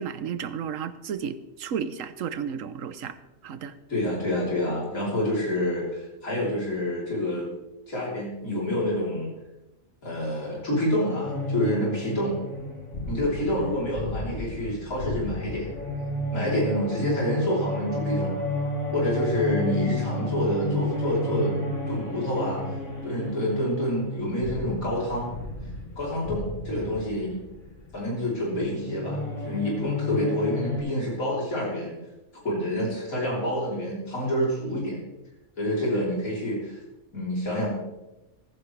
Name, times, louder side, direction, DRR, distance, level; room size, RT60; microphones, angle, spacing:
voice 1, 0.0-3.2 3.4-3.7, right 7 dB, 70° right, 12 dB, 1.2 m, -33 dB
voice 2, 3.9-7.5 7.9-9.3 10.0-12.4 13.1-15.7 16.3-18.3 18.9-21.6 21.9-22.7 23.0-25.3 26.0-27.4 27.9-31.9 32.4-35.0 35.6-36.8 37.1-37.7, equal, 85° left, -5 dB, 4.2 m, -27 dB
sound 1, 11.2-30.8, left 2 dB, 60° left, 3.1 m, -32 dB
15.0 x 14.5 x 3.3 m, 0.99 s
omnidirectional pair, 1.4 m